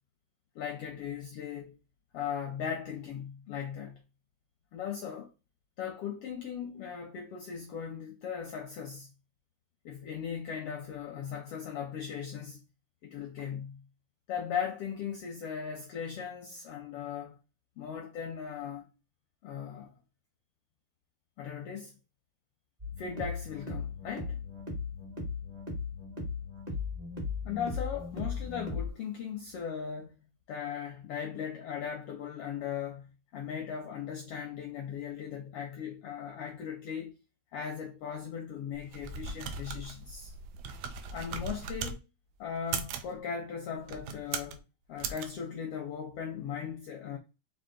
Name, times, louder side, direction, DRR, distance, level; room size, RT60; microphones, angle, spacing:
voice 1, 0.5-1.8 2.1-4.0 4.7-5.3 5.8-9.1 9.8-12.6 13.0-13.8 14.3-17.4 17.8-18.9 19.4-19.9 21.4-21.9 23.0-24.4 27.4-30.2 30.5-37.1 37.5-40.3 41.1-42.0 42.4-44.6 44.9-47.2, left 7 dB, 80° left, 1.3 m, -38 dB
sound 1, 22.8-28.9, left 4 dB, 35° right, 0.6 m, -37 dB
sound 2, 38.7-42.0 42.6-43.1 43.8-44.6 45.0-45.3, right 5 dB, 80° right, 1.8 m, -38 dB
6.1 x 2.4 x 3.7 m
omnidirectional pair, 3.5 m